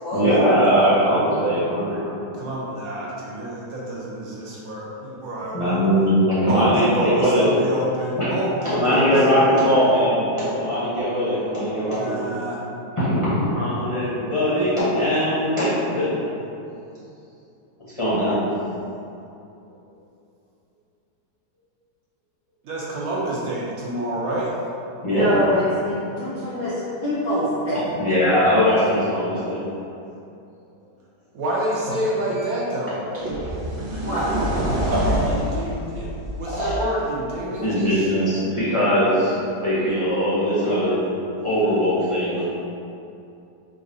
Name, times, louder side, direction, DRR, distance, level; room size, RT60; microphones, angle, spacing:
voice 1, 0.1-2.1 5.5-7.4 8.2-8.3 8.6-12.3 12.9-16.2 18.0-18.5 25.0-25.3 28.0-29.6 33.9-34.0 35.2-35.3 36.5-36.7 37.4-39.4 39.6-41.0 41.4-42.4, equal, 25° left, -12 dB, 0.7 m, -20 dB
voice 2, 2.4-5.8 6.5-10.0 12.0-12.6 22.6-24.5 31.3-33.0 35.0-38.0, right 1 dB, 70° right, -5 dB, 1.0 m, -28 dB
voice 3, 25.1-27.9 34.0-34.3, equal, 75° left, -10 dB, 0.4 m, -25 dB
sound 1, 32.3-32.5 33.1-36.9, equal, 85° right, 0.4 m, -25 dB
4.7 x 2.4 x 2.6 m, 2.7 s
omnidirectional pair, 1.8 m